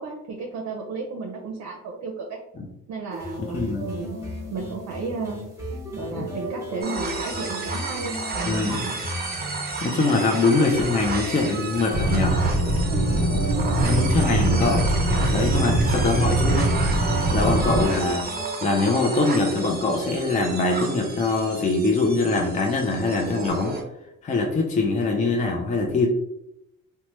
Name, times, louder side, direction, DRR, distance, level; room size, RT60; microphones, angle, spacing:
voice 1, 0.0-2.4 2.9-4.2 4.5-5.4 5.9-9.0 12.9-14.0 17.2-17.4, right 4 dB, 65° right, 0 dB, 0.6 m, -33 dB
sound 1, 3.1-18.5, left 1 dB, 10° right, 1.1 m, -36 dB
voice 2, 3.4-3.9 6.1-6.3 8.5-8.8 9.8-12.4 13.8-14.9 15.3-16.7 17.3-18.3 18.6-23.8 24.2-26.1, left 3 dB, 25° left, 1 dB, 0.4 m, -23 dB
sound 2, 6.8-23.8, right 4 dB, 30° right, 0.7 m, -32 dB
sound 3, 11.9-17.8, right 1 dB, 60° left, 1.0 m, -22 dB
3.0 x 2.1 x 2.9 m, 0.85 s
cardioid pair, 90°, 30 cm